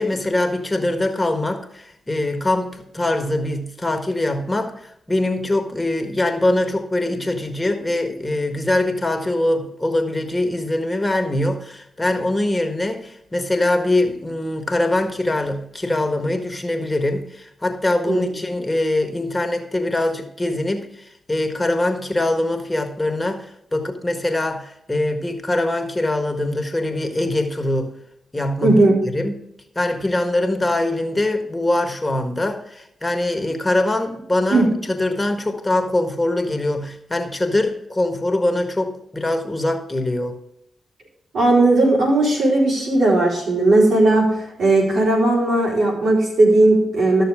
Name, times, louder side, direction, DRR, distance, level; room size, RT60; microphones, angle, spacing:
voice 1, 0.0-27.9 28.3-28.8 29.1-29.4 29.7-40.4, left 1 dB, 25° left, 6 dB, 1.6 m, -23 dB
voice 2, 28.6-29.0 34.5-34.7 41.3-44.3 44.6-47.2, right 2 dB, 75° right, -4 dB, 4.2 m, -16 dB
13.0 x 6.7 x 3.6 m, 0.77 s
hypercardioid pair, 40°, 0 cm